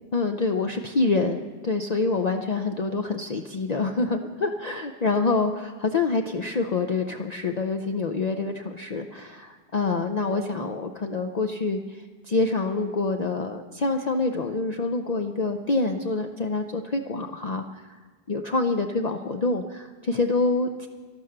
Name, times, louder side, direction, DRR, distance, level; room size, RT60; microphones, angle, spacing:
voice 1, 0.1-18.0 18.3-20.9, left 3 dB, 45° left, 5 dB, 0.6 m, -26 dB
12.5 x 12.5 x 6.6 m, 1.4 s
omnidirectional pair, 1.2 m